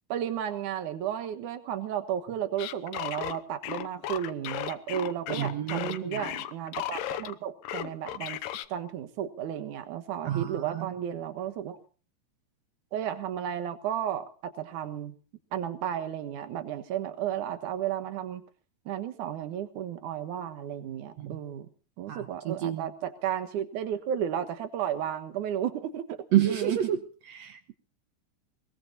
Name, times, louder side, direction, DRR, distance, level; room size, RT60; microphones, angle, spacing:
voice 1, 0.1-8.4 8.7-11.8 12.9-15.2 15.5-18.4 18.9-21.7 22.0-26.8, right 10 dB, 60° right, 9 dB, 2.6 m, -33 dB
sound 1, 2.6-7.3 7.6-8.7, left 12 dB, 75° left, 2.5 m, -35 dB
voice 2, 5.3-6.2 10.2-10.9 21.2-21.4 22.1-22.9 26.3-27.0 27.3-27.7, right 11 dB, 80° right, 10 dB, 1.5 m, -29 dB
22.0 x 21.5 x 2.7 m, 0.39 s
omnidirectional pair, 4.3 m